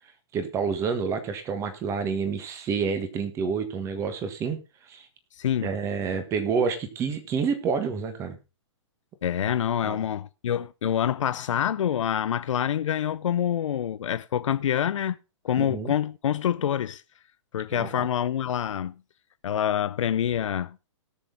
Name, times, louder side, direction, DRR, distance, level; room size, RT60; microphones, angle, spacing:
voice 1, 0.3-4.6 4.9-5.1 5.6-8.4 9.8-10.0 15.5-15.9 17.7-18.1, right 5 dB, 15° right, 1.4 m, -28 dB
voice 2, 5.4-5.7 9.2-15.2 15.4-17.0 17.5-18.9 19.4-20.8, left 9 dB, 75° left, 0.6 m, -26 dB
18.5 x 6.5 x 3.9 m
hypercardioid pair, 155°, 16 cm